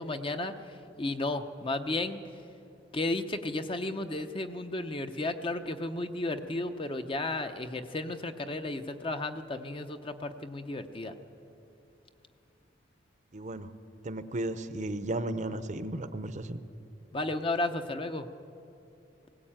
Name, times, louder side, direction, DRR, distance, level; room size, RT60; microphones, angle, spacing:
voice 1, 0.0-2.2 2.9-11.1 17.1-18.3, left 2 dB, 30° left, 8 dB, 0.8 m, -33 dB
voice 2, 13.3-13.7 14.0-16.6, right 1 dB, 40° right, 11 dB, 0.8 m, -34 dB
20.0 x 17.0 x 8.9 m, 2.8 s
head